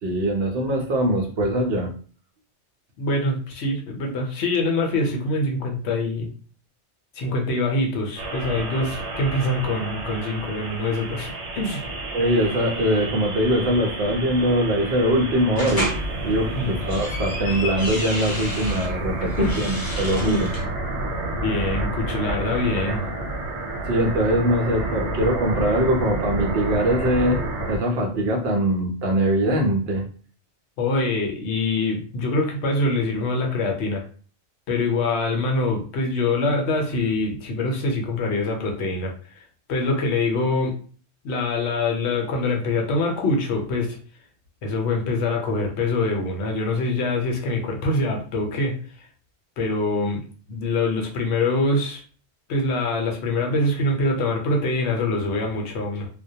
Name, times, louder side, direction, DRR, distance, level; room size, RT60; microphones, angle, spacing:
voice 1, 0.0-1.9 12.1-15.9 16.2-20.5 23.9-27.4 27.7-30.0, right 1 dB, 65° right, 1 dB, 0.8 m, -22 dB
voice 2, 3.0-6.3 7.1-11.8 16.5-16.7 19.4-19.7 20.2-20.5 21.4-23.1 30.8-34.0 34.7-39.4 39.7-40.7 41.2-44.0 44.6-48.7 49.6-52.0 52.5-56.1, left 2 dB, 75° left, 1 dB, 0.9 m, -24 dB
sound 1, 8.2-27.8, right 2 dB, 85° right, 1.0 m, -30 dB
sound 2, 15.6-16.0 16.7-18.9 19.3-20.6, equal, 25° left, 0.6 m, -31 dB
2.1 x 2.1 x 2.7 m, 0.42 s
omnidirectional pair, 1.2 m